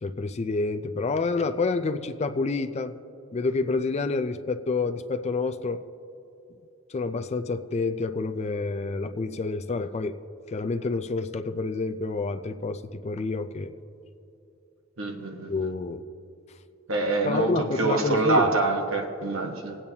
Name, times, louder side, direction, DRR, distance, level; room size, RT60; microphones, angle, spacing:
voice 1, 0.0-2.9 3.3-5.8 6.9-10.1 10.5-13.7 15.5-16.0 17.2-18.5, left 3 dB, 30° left, 9 dB, 0.4 m, -28 dB
voice 2, 15.0-15.7 16.9-19.8, right 3 dB, 75° right, 3 dB, 1.2 m, -25 dB
21.0 x 8.7 x 2.8 m, 2.8 s
head